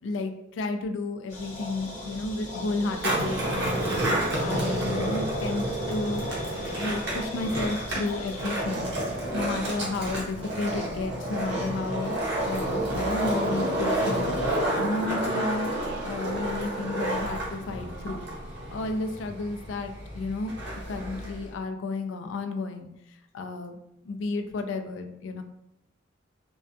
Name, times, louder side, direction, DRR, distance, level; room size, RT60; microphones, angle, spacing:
voice 1, 0.0-4.2 4.4-6.3 6.6-8.9 9.3-15.7 16.0-18.3 18.7-20.5 20.9-23.8 24.0-25.4, left 3 dB, 75° left, 6 dB, 0.3 m, -32 dB
sound 1, 1.3-8.6, equal, 40° left, 0.7 m, -36 dB
Skateboard, 2.9-21.5, right 1 dB, 60° right, 0.7 m, -30 dB
2.5 x 2.2 x 2.2 m, 0.83 s
head